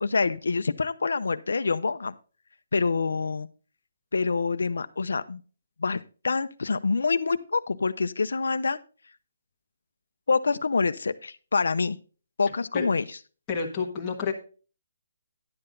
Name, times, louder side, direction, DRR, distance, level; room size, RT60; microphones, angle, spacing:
voice 1, 0.0-2.1 2.7-3.5 4.1-5.4 5.8-8.8 10.3-12.0 12.4-13.0, left 4 dB, 90° left, 12 dB, 0.6 m, -26 dB
voice 2, 13.5-14.3, left 5 dB, 10° left, -3 dB, 1.3 m, -29 dB
10.5 x 7.8 x 3.8 m, 0.36 s
hypercardioid pair, 180°, 0 cm